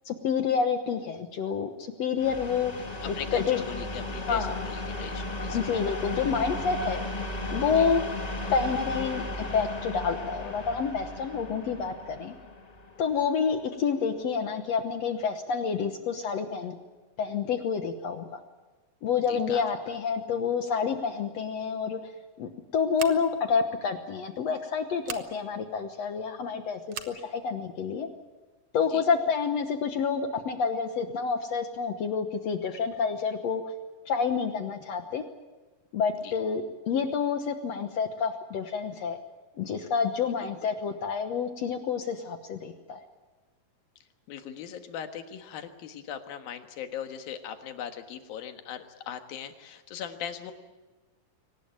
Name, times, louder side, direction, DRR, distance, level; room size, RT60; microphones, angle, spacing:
voice 1, 0.1-2.7 3.1-3.6 4.3-4.6 5.5-7.0 7.5-8.0 8.5-12.4 13.0-16.8 17.2-18.4 19.0-22.0 22.4-28.1 28.7-33.6 34.1-35.2 35.9-39.2 39.6-43.0, left 6 dB, 60° left, 7 dB, 1.9 m, -28 dB
sound 1, 2.2-13.8, left 2 dB, 25° left, 0.9 m, -35 dB
voice 2, 3.0-5.6 7.7-7.9 19.3-19.6 28.9-29.0 36.2-36.3 40.2-40.7 44.3-50.5, left 9 dB, 90° left, 7 dB, 3.3 m, -39 dB
Scissors, 22.9-23.5 25.0-25.3 26.9-27.2, right 8 dB, 60° right, 1.7 m, -39 dB
23.5 x 19.0 x 9.0 m, 1.2 s
omnidirectional pair, 4.0 m